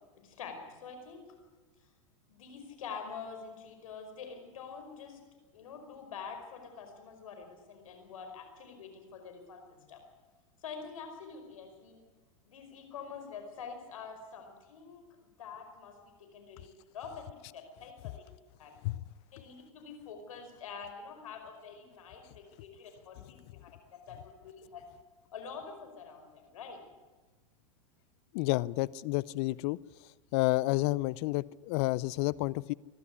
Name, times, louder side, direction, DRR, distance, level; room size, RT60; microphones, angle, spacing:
voice 1, 0.2-1.2 2.3-5.2 5.5-10.0 10.6-12.0 12.4-15.0 15.4-16.7 16.9-18.1 18.6-18.7 19.3-24.9 25.3-26.8, left 6 dB, 80° left, 5 dB, 5.3 m, -46 dB
voice 2, 28.3-29.8 30.3-32.7, left 20 dB, 55° left, 21 dB, 0.6 m, -30 dB
23.0 x 12.5 x 9.8 m, 1.3 s
hypercardioid pair, 115°, 17 cm